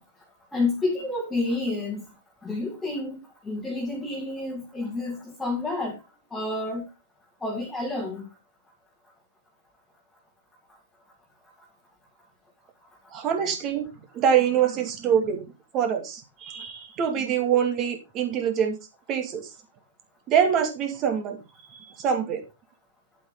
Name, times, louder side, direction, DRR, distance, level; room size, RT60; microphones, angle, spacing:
voice 1, 0.5-2.1 2.4-3.2 3.4-6.0 6.3-6.9 7.4-8.2, left 2 dB, 5° left, -1 dB, 2.3 m, -29 dB
voice 2, 13.1-13.9 14.1-15.4 15.7-18.8 19.1-19.5 20.3-21.4 21.7-22.4, right 8 dB, 30° right, 6 dB, 2.6 m, -24 dB
9.0 x 8.2 x 3.9 m, 0.26 s
hypercardioid pair, 125°, 0 cm